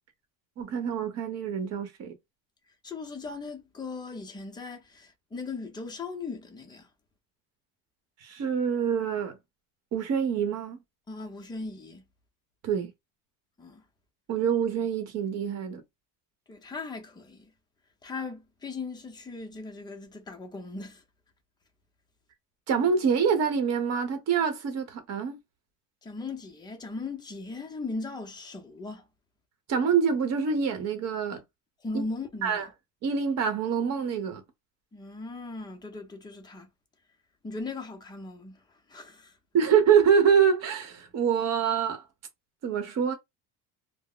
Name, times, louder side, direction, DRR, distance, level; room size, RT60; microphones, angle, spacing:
voice 1, 0.6-2.1 8.2-9.4 9.9-10.8 12.6-12.9 14.3-15.8 22.7-25.4 29.7-31.4 31.9-32.0 32.4-32.7 33.0-34.4 39.5-42.0 42.6-43.1, right 7 dB, 45° right, 0.9 m, -25 dB
voice 2, 2.8-6.9 11.1-12.0 13.6-13.8 16.5-17.5 18.0-21.0 26.0-29.0 31.8-32.7 34.9-36.7 37.4-38.6 38.9-39.3, left 3 dB, 10° left, 0.6 m, -38 dB
2.1 x 2.0 x 3.7 m
cardioid pair, 135°, 36 cm